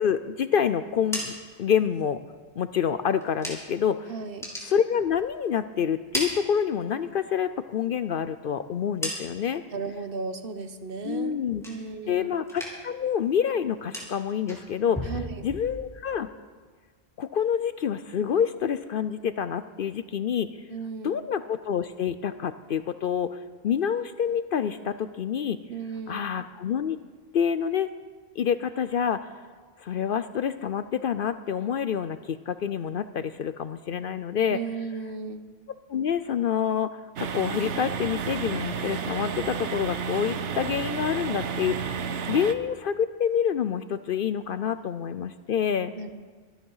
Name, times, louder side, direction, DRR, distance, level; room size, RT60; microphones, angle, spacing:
voice 1, 0.0-2.2 2.6-4.1 4.6-9.6 11.0-11.6 12.1-15.1 15.4-16.3 17.2-20.5 21.0-23.4 23.6-25.6 26.1-27.0 27.3-27.9 28.4-29.3 29.8-34.6 35.9-42.0 42.3-45.9, left 8 dB, 60° left, 12 dB, 0.7 m, -27 dB
sound 1, 0.8-3.9 4.2-5.5 5.8-7.2 7.5-9.7 10.0-10.5 10.8-12.2 12.4-13.0 13.3-16.1, equal, ahead, 3.4 m, -38 dB
voice 2, 4.1-4.4 9.7-11.4 11.6-12.3 15.0-15.5 20.7-21.2 25.7-26.3 34.5-35.4 45.9-46.3, right 4 dB, 55° right, 9 dB, 1.2 m, -35 dB
sound 2, 37.2-42.5, right 6 dB, 85° right, 1.2 m, -31 dB
24.0 x 9.5 x 5.6 m, 1.5 s
omnidirectional pair, 1.2 m